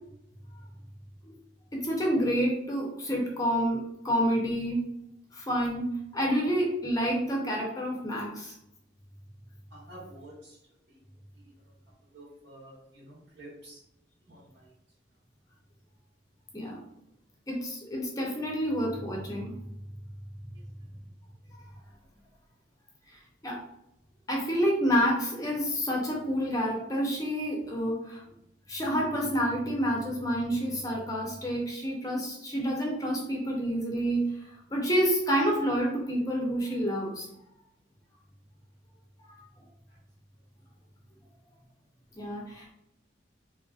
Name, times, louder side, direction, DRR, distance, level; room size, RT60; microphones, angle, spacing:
voice 1, 1.7-3.8 4.0-4.8 5.3-8.5 16.5-16.8 17.5-19.5 23.1-23.6 24.3-28.2 28.7-34.3 34.7-37.3 42.2-42.7, equal, 20° left, -2 dB, 0.5 m, -28 dB
voice 2, 9.7-10.6 10.9-11.0 11.3-11.5 12.1-13.8 14.3-14.7 20.5-20.6 39.9-40.0, right 1 dB, 75° right, -5 dB, 1.3 m, -50 dB
2.8 x 2.6 x 2.3 m, 0.82 s
head